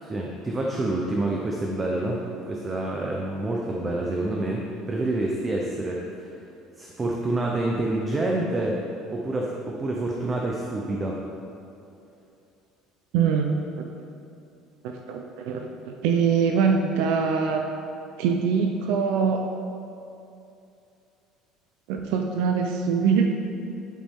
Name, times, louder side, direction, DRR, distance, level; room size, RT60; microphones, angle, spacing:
voice 1, 0.0-2.2 2.5-6.3 6.8-8.8 9.1-11.2, right 2 dB, 15° right, -2 dB, 0.7 m, -27 dB
voice 2, 13.1-13.8 14.8-17.7 18.2-19.4 21.9-23.3, right 6 dB, 70° right, 3 dB, 0.6 m, -23 dB
10.5 x 8.5 x 3.7 m, 2.6 s
cardioid pair, 175°, 0 cm